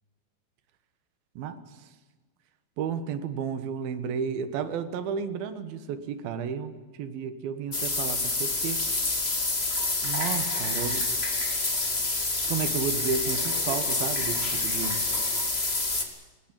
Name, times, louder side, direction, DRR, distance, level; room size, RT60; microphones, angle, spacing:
voice 1, 2.8-8.8 10.0-11.1 12.5-15.0, right 6 dB, 65° right, 10 dB, 2.5 m, -32 dB
sound 1, 7.7-16.0, left 2 dB, 50° left, 0.7 m, -27 dB
20.5 x 19.5 x 8.9 m, 1.3 s
omnidirectional pair, 5.9 m